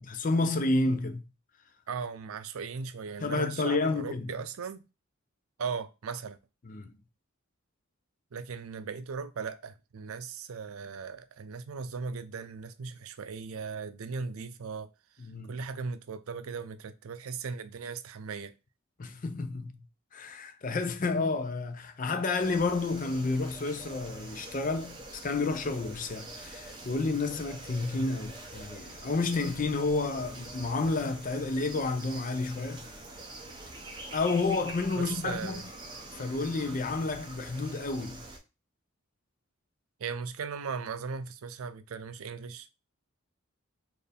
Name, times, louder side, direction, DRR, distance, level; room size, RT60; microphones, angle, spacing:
voice 1, 0.1-1.2 3.2-4.3 6.6-6.9 15.2-15.6 19.0-19.8 20.1-32.9 34.1-35.6 36.1-38.2, left 3 dB, 40° left, 0.5 m, -30 dB
voice 2, 1.9-4.8 5.6-6.4 8.3-14.9 15.5-18.5 34.9-35.7 40.0-42.7, right 5 dB, 90° right, 0.5 m, -38 dB
sound 1, 22.4-38.4, right 2 dB, 20° right, 0.8 m, -45 dB
4.3 x 2.6 x 3.4 m
head